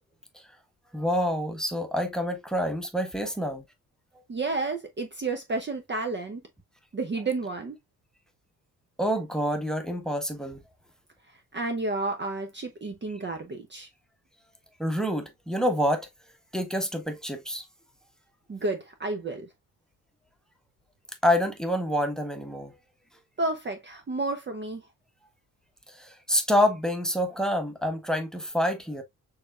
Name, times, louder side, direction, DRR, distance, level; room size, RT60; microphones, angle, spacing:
voice 1, 0.9-3.6 9.0-10.6 14.8-16.1 16.5-17.6 21.2-22.7 25.9-29.0, equal, ahead, 1.1 m, -27 dB
voice 2, 4.3-6.4 6.9-7.8 11.5-13.9 18.5-19.5 23.4-24.8, right 3 dB, 25° right, 0.8 m, -31 dB
6.5 x 3.1 x 2.3 m
figure-of-eight pair, 40°, 44 cm